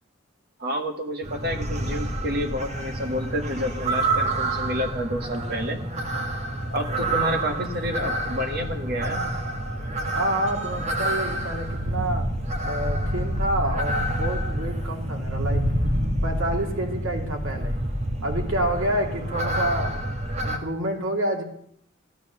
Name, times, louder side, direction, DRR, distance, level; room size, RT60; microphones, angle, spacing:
voice 1, 0.6-5.8 6.7-9.3, equal, 50° right, 5 dB, 1.6 m, -29 dB
sound 1, 1.2-20.6, right 1 dB, 35° right, 1.6 m, -28 dB
voice 2, 10.1-12.3 12.6-15.6 16.2-17.8 18.2-20.0 20.4-21.4, right 1 dB, 85° right, 2 dB, 2.7 m, -28 dB
14.5 x 12.0 x 6.9 m, 0.68 s
head